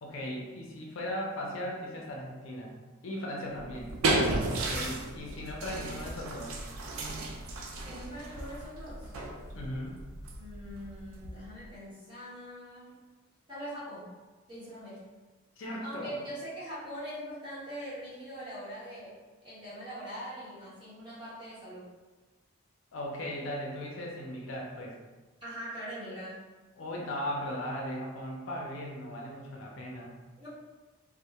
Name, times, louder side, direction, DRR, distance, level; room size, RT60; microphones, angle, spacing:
voice 1, 0.0-2.7 3.0-3.9 4.5-6.6 9.5-10.0 15.6-16.2 22.9-24.9 26.8-30.1, left 1 dB, 65° left, -2 dB, 0.5 m, -37 dB
sound 1, 3.6-11.7, right 2 dB, 75° right, 0.3 m, -34 dB
voice 2, 7.8-9.1 10.4-12.9 13.5-14.1 14.5-15.0 15.8-19.2 19.4-21.9 25.4-26.4 30.4-30.5, equal, 20° right, -12 dB, 1.1 m, -42 dB
2.1 x 2.1 x 2.8 m, 1.3 s
head